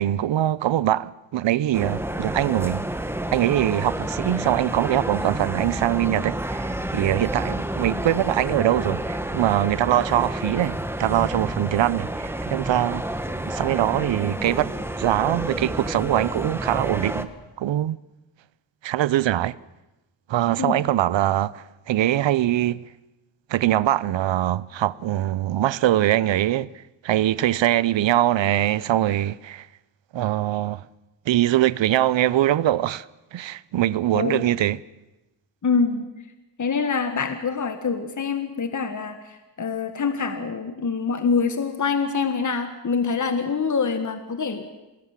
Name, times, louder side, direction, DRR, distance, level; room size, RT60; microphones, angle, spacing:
voice 1, 0.0-2.8 3.3-13.0 13.5-14.7 15.0-17.3 17.6-18.0 18.8-19.6 20.3-22.8 23.5-29.7 30.1-30.9 31.3-33.1 33.3-34.8, right 13 dB, 75° right, 0.8 m, -22 dB
sound 1, 1.7-17.2, right 1 dB, 5° right, 1.6 m, -29 dB
voice 2, 35.6-36.0 36.6-44.7, left 5 dB, 40° left, 1.9 m, -25 dB
27.0 x 20.0 x 7.5 m
cardioid pair, 100°, 44 cm